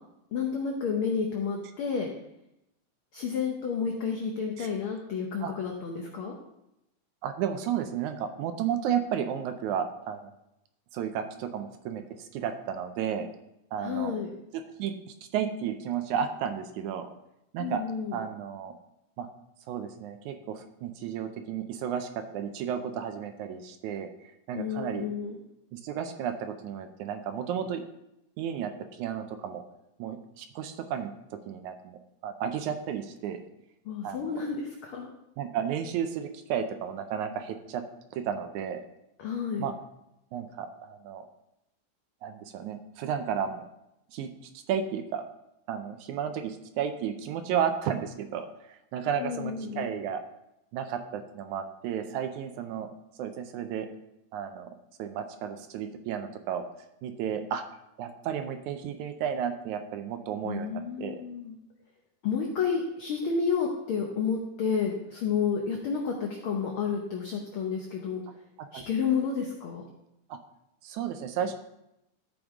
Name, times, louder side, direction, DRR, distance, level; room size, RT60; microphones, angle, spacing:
voice 1, 0.3-2.1 3.1-6.4 13.8-14.4 17.6-18.2 24.5-25.4 33.8-35.1 39.2-39.7 49.2-49.9 60.4-61.5 62.2-68.2 68.7-69.8, left 6 dB, 75° left, 0 dB, 1.2 m, -30 dB
voice 2, 7.2-10.3 10.9-13.3 13.7-14.2 14.8-14.9 15.3-17.1 17.5-17.8 18.1-18.7 19.2-19.3 19.7-24.1 24.5-25.1 25.7-27.8 28.4-29.6 30.0-33.4 34.0-34.3 35.4-37.8 38.1-38.8 39.6-39.7 40.3-41.3 42.2-43.6 44.1-45.2 45.7-50.2 50.7-52.9 53.2-53.9 54.3-54.7 55.0-56.7 57.0-57.6 58.0-61.2 68.6-68.8 70.3-70.4 70.8-71.5, right 8 dB, 80° right, 7 dB, 2.0 m, -33 dB
13.0 x 5.1 x 3.6 m, 0.85 s
omnidirectional pair, 3.5 m